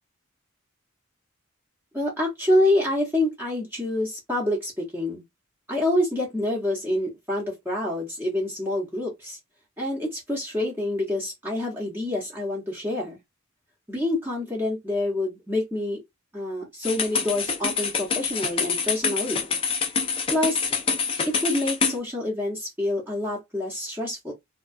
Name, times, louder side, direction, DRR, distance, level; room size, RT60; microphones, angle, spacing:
voice 1, 1.9-5.2 5.7-9.4 9.8-13.2 13.9-16.0 16.3-19.4 20.3-20.7 21.4-24.3, left 1 dB, 10° right, 0.8 m, -27 dB
sound 1, 16.8-22.0, left 5 dB, 25° left, 0.4 m, -26 dB
2.3 x 2.2 x 2.4 m
head